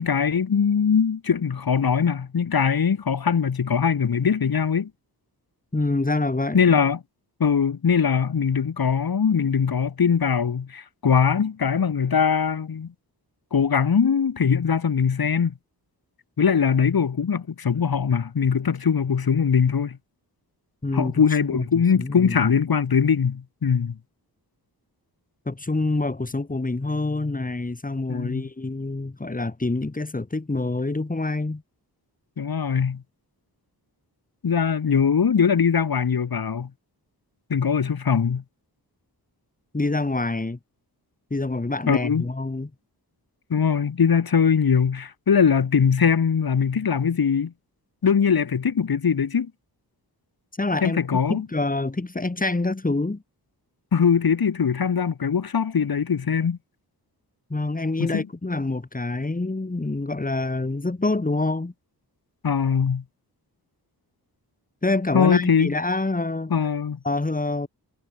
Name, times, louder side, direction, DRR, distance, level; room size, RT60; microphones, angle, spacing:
voice 1, 0.0-4.9 6.5-7.0 7.4-12.9 13.5-15.5 16.4-20.0 20.9-23.9 28.1-28.5 32.4-33.0 34.4-36.7 37.5-38.4 41.9-42.2 43.5-47.5 48.0-49.5 50.8-51.5 53.9-56.6 58.0-58.3 62.4-63.0 65.1-65.7 66.5-67.0, left 6 dB, 65° left, 6.2 m, -21 dB
voice 2, 5.7-6.8 20.8-21.2 21.5-22.4 25.5-31.6 39.7-40.6 41.3-42.7 50.6-51.0 51.3-53.2 57.5-61.7 64.8-66.5 67.0-67.7, left 2 dB, 20° left, 3.8 m, -26 dB
wide cardioid pair, 115°, 39 cm